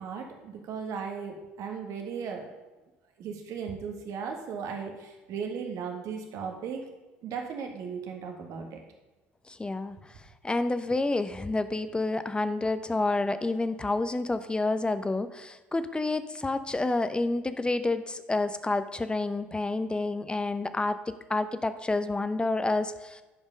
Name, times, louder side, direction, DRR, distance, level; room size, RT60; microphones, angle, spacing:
voice 1, 0.0-2.5 3.2-6.8 7.2-8.8, right 6 dB, 60° right, 3 dB, 1.6 m, -36 dB
voice 2, 9.6-10.0 10.4-21.0 21.3-23.2, left 2 dB, 15° left, 11 dB, 0.7 m, -29 dB
10.5 x 5.3 x 5.2 m, 1.1 s
hypercardioid pair, 60°, 6 cm